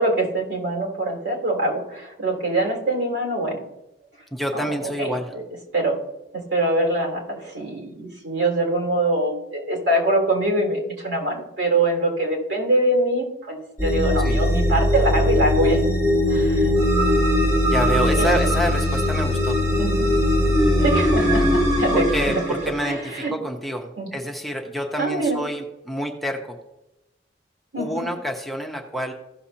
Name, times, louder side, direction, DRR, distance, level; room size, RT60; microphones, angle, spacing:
voice 1, 0.0-3.6 4.5-5.4 5.7-6.0 6.3-15.8 16.3-16.7 18.2-18.4 19.8-20.1 20.8-22.5 22.8-23.3 24.0-24.1 25.0-25.4 27.7-28.1, right 1 dB, 85° right, 0 dB, 3.4 m, -24 dB
voice 2, 4.3-5.3 14.2-14.4 17.7-19.6 21.9-26.6 27.8-29.1, equal, ahead, 1 dB, 0.9 m, -28 dB
sound 1, 13.8-22.9, left 1 dB, 20° right, 3.3 m, -20 dB
15.5 x 6.7 x 2.8 m, 0.92 s
head